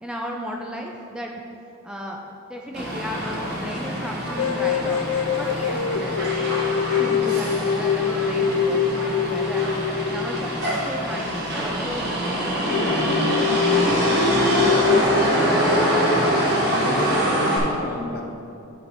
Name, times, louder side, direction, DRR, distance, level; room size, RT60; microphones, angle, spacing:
voice 1, 0.0-1.3 1.8-2.2 2.5-9.7 10.0-12.1 12.5-13.3 14.1-14.3 16.7-17.0, equal, 5° right, 0 dB, 0.5 m, -34 dB
Motor vehicle (road), 2.7-17.6, equal, 50° right, 1.5 m, -24 dB
sound 1, 4.4-11.7 12.0-12.1 12.4-12.5 12.7-15.0, left 8 dB, 85° left, 0.4 m, -24 dB
voice 2, 13.9-14.4 14.9-15.6 16.5-18.2, left 2 dB, 45° left, 2 dB, 0.8 m, -32 dB
10.5 x 5.1 x 4.2 m, 2.6 s
head